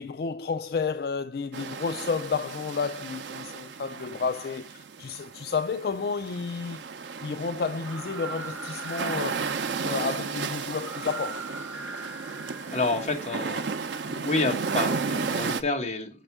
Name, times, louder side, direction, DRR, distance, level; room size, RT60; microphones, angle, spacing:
voice 1, 0.0-6.8 7.2-9.3 9.8-11.5, left 5 dB, 60° left, 0.4 m, -31 dB
sound 1, 1.5-15.6, right 5 dB, 90° right, 0.6 m, -34 dB
sound 2, 7.7-13.5, right 3 dB, 10° right, 0.6 m, -41 dB
voice 2, 12.7-16.1, left 3 dB, 35° left, 1.5 m, -29 dB
6.6 x 4.3 x 6.0 m
head